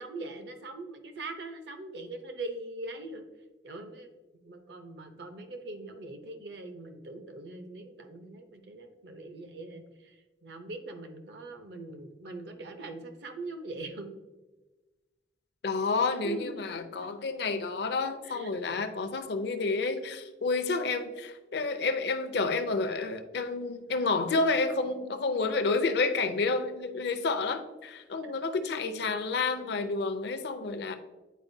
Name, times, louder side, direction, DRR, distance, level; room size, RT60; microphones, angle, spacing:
voice 1, 0.0-3.2 3.6-4.1 4.4-14.1 16.2-17.1 18.2-18.7 28.2-28.3 28.6-29.1, right 2 dB, 65° right, 7 dB, 0.7 m, -42 dB
voice 2, 15.6-31.0, left 3 dB, 65° left, 8 dB, 0.5 m, -30 dB
9.2 x 4.3 x 2.6 m, 1.2 s
head